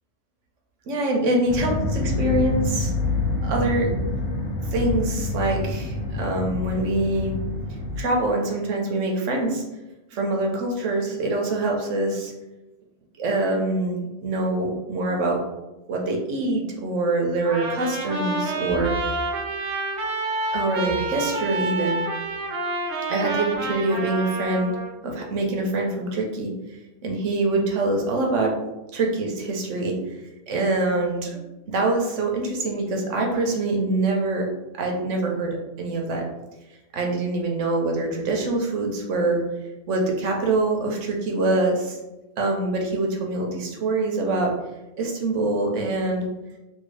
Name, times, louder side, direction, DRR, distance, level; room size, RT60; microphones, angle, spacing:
voice 1, 0.9-2.9 3.4-3.9 4.7-7.3 8.0-9.6 10.1-12.3 13.2-15.4 15.9-19.2 20.5-22.0 23.1-24.7 25.0-26.5 27.0-28.6 28.9-30.0 30.5-31.4 31.7-34.5 34.8-36.2 36.9-39.4 39.9-42.0 42.4-44.5 45.0-46.2, right 2 dB, 90° right, 1 dB, 1.1 m, -24 dB
sound 1, 1.5-8.0, left 2 dB, 90° left, 1.0 m, -27 dB
Trumpet, 17.4-24.9, right 2 dB, 55° right, 0.9 m, -28 dB
2.8 x 2.7 x 3.2 m, 1.0 s
omnidirectional pair, 1.2 m